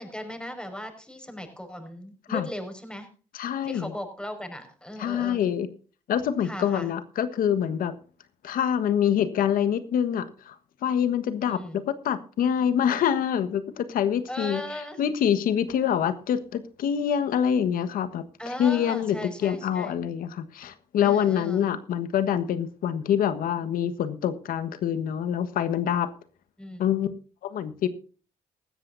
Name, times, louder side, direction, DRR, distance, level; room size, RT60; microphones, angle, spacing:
voice 1, 0.0-3.1 3.6-5.5 6.4-6.9 11.5-11.8 14.3-15.0 18.4-19.9 21.0-21.7 26.6-26.8, equal, 5° left, 6 dB, 5.4 m, -37 dB
voice 2, 3.3-3.9 5.0-5.7 6.1-7.9 8.4-10.6 10.8-14.6 15.0-26.1 26.8-27.1 27.4-27.9, left 9 dB, 75° left, 11 dB, 1.4 m, -25 dB
19.0 x 14.0 x 2.6 m, 0.39 s
supercardioid pair, 50°, 15 cm